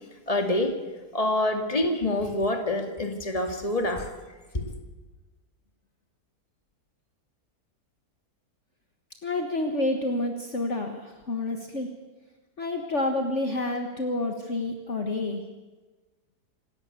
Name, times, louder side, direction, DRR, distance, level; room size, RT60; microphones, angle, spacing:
voice 1, 0.3-0.7 1.1-4.1 4.5-4.6, left 1 dB, 20° left, 5 dB, 2.3 m, -26 dB
voice 2, 9.2-11.9 12.6-15.4, left 2 dB, 45° left, 4 dB, 1.8 m, -29 dB
26.5 x 12.5 x 8.3 m, 1.3 s
omnidirectional pair, 1.7 m